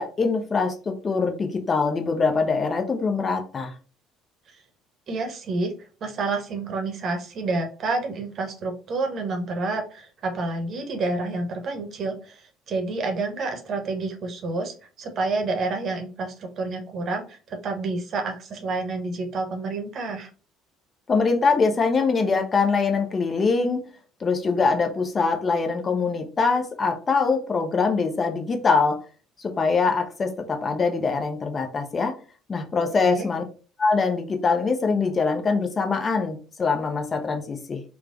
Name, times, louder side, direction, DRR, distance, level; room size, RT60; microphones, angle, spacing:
voice 1, 0.0-3.7 21.1-23.8 24.2-29.0 29.4-32.1 32.5-33.4 33.8-37.8, left 4 dB, 30° left, 5 dB, 0.7 m, -23 dB
voice 2, 5.1-5.7 6.0-20.3 33.0-33.3, right 3 dB, 45° right, 4 dB, 0.8 m, -29 dB
4.5 x 2.2 x 2.5 m, 0.36 s
figure-of-eight pair, 55°, 0 cm